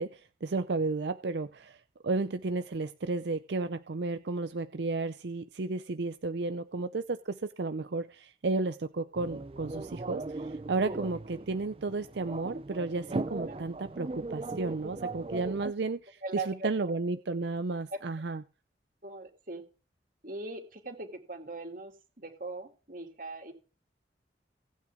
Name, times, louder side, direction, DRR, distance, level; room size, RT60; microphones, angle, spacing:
voice 1, 0.0-18.4, right 3 dB, 80° right, 11 dB, 0.6 m, -33 dB
sound 1, 9.1-15.7, right 2 dB, 30° right, 0.5 m, -38 dB
voice 2, 16.2-16.7 17.9-18.0 19.0-19.6 20.2-23.5, right 3 dB, 50° right, 4 dB, 2.8 m, -40 dB
19.0 x 9.1 x 3.7 m, 0.36 s
head